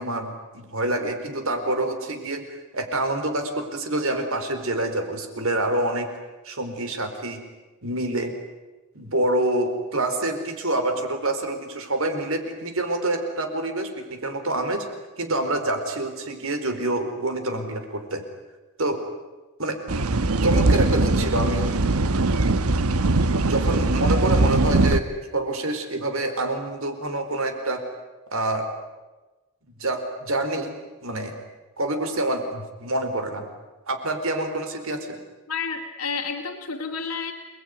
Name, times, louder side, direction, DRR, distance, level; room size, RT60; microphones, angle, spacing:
voice 1, 0.0-2.4 2.7-6.1 6.4-7.4 7.8-8.4 8.9-14.8 15.2-18.2 18.8-19.0 19.6-19.8 20.4-21.8 23.3-27.8 28.3-28.7 29.8-30.7 31.0-31.3 31.8-33.4 33.9-35.1 37.0-37.1, right 1 dB, 75° right, 7 dB, 4.5 m, -27 dB
sound 1, 19.9-25.0, right 2 dB, 90° right, 1.1 m, -21 dB
voice 2, 35.5-37.3, left 5 dB, 85° left, 2 dB, 2.3 m, -30 dB
29.0 x 21.0 x 9.7 m, 1.2 s
head